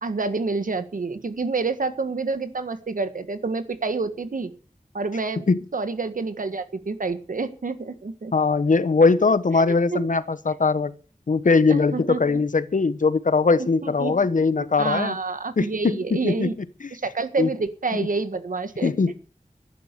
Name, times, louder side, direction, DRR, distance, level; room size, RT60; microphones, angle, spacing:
voice 1, 0.0-4.5 4.9-5.4 5.7-8.3 9.9-10.2 11.7-12.4 13.6-14.2 14.8-16.5 16.9-18.9, right 3 dB, 85° right, 11 dB, 1.6 m, -28 dB
voice 2, 8.3-10.9 11.3-15.2 15.6-16.5 16.8-16.9 17.4-17.5 17.9-18.1 18.8-19.1, left 4 dB, 75° left, 15 dB, 1.1 m, -21 dB
13.0 x 11.0 x 6.8 m, 0.38 s
wide cardioid pair, 60°, 13 cm